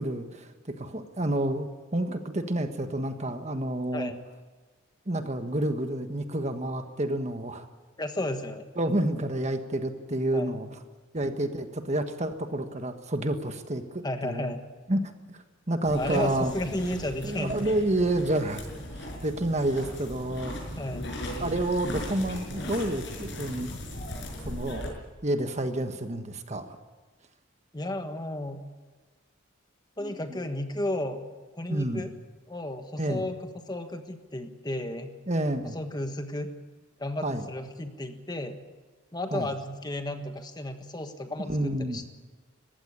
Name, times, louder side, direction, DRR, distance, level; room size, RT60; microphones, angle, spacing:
voice 1, 0.0-4.1 5.1-7.6 8.8-10.7 11.1-14.5 14.9-15.4 15.7-16.5 17.2-18.7 19.0-20.8 21.4-23.8 24.4-24.8 25.2-26.8 30.0-30.1 31.7-32.0 33.0-33.2 35.3-35.8 37.2-37.4 39.3-39.5 41.4-42.0, right 1 dB, 35° right, 7 dB, 1.4 m, -29 dB
voice 2, 8.0-8.7 10.3-10.6 14.0-14.6 15.9-17.8 20.8-21.1 27.7-28.6 30.0-31.2 31.5-32.1 32.5-35.1 35.6-36.5 37.0-38.6 39.1-42.0, left 1 dB, 20° left, 6 dB, 1.4 m, -33 dB
sound 1, 15.8-24.9, equal, 60° left, 5.9 m, -37 dB
21.0 x 15.5 x 9.7 m, 1.3 s
head